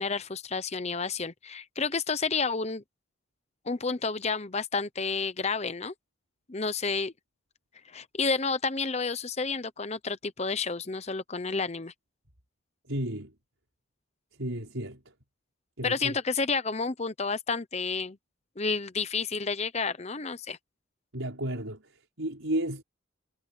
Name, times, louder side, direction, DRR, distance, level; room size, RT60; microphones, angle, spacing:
voice 1, 0.0-2.8 3.7-5.9 6.5-7.1 7.9-11.9 15.8-18.2 18.6-20.6, left 4 dB, 30° left, 0.9 m, -30 dB
voice 2, 12.9-13.3 14.3-15.1 15.8-16.2 21.1-22.8, right 1 dB, 80° right, 5.4 m, -33 dB
head